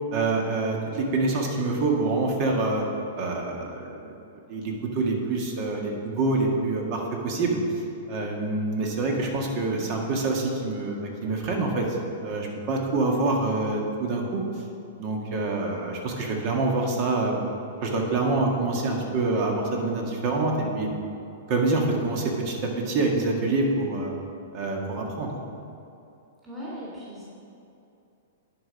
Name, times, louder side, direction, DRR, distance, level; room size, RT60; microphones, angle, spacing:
voice 1, 0.1-2.8 3.2-4.1 4.5-7.6 8.1-11.9 12.2-14.4 15.0-17.4 17.8-20.9 21.5-24.1 24.5-25.3, right 3 dB, 45° right, 0 dB, 1.7 m, -26 dB
voice 2, 26.4-27.2, equal, 10° right, -9 dB, 2.2 m, -38 dB
10.5 x 5.0 x 5.2 m, 2.7 s
hypercardioid pair, 135°, 0 cm